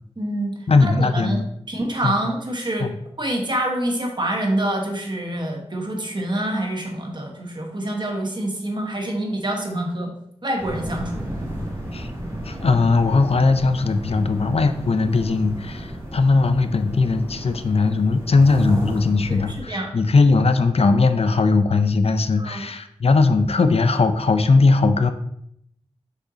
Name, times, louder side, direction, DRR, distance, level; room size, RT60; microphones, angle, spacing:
voice 1, 0.2-1.4 1.7-2.9 3.2-10.1 10.4-11.2 19.3-19.9 22.4-22.7, right 1 dB, 45° right, 1 dB, 1.3 m, -26 dB
voice 2, 0.7-1.5 2.0-2.1 2.8-2.9 11.9-12.1 12.4-25.1, left 3 dB, 65° left, 9 dB, 0.5 m, -19 dB
sound 1, 10.6-19.6, right 1 dB, 25° right, 2.2 m, -32 dB
6.2 x 5.3 x 2.8 m, 0.73 s
wide cardioid pair, 65°, 11 cm